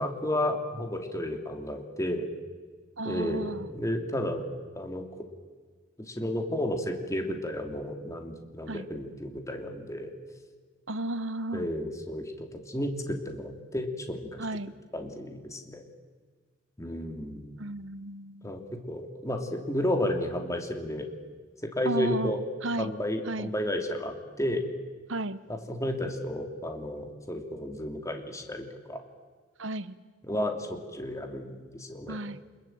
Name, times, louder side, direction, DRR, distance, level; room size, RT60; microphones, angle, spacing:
voice 1, 0.0-2.3 3.0-4.5 4.7-5.0 6.0-10.1 11.5-14.4 14.9-15.8 16.8-17.6 18.4-21.1 21.8-22.4 22.8-24.6 25.5-29.0 30.2-32.2, left 1 dB, 15° left, 4 dB, 3.0 m, -32 dB
voice 2, 3.0-3.7 8.7-8.9 10.9-11.7 14.4-14.7 17.6-18.7 21.8-22.3 22.6-22.9 23.3-23.5 25.1-25.4 29.6-30.0 32.1-32.4, right 2 dB, 70° right, 14 dB, 1.2 m, -33 dB
27.0 x 21.5 x 9.0 m, 1.5 s
head